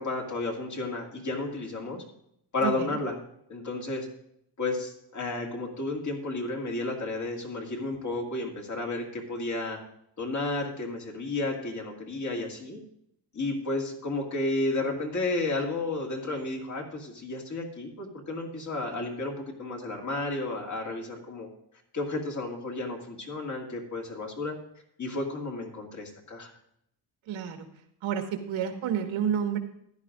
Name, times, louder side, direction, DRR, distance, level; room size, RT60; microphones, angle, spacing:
voice 1, 0.0-2.0 2.5-3.1 3.5-4.1 4.6-9.8 10.2-12.8 13.3-21.5 21.9-24.6 25.0-26.5, left 2 dB, 40° left, 0 dB, 2.1 m, -32 dB
voice 2, 2.6-3.0 27.3-27.7 28.0-29.6, right 8 dB, 80° right, 5 dB, 1.6 m, -30 dB
14.5 x 11.0 x 2.5 m, 0.73 s
cardioid pair, 145°, 47 cm